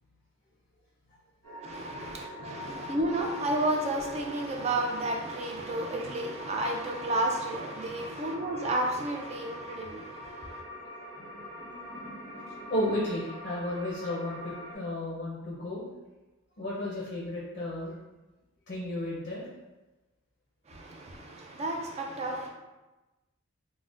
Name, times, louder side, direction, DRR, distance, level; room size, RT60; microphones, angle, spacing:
sound 1, 1.4-14.7, equal, 80° right, 1.1 m, -44 dB
voice 1, 1.6-10.5 20.7-22.5, right 1 dB, 30° right, 0.3 m, -32 dB
voice 2, 11.2-15.8 16.6-18.0 18.7-19.4, left 1 dB, 40° left, 0.5 m, -34 dB
3.5 x 2.1 x 2.5 m
head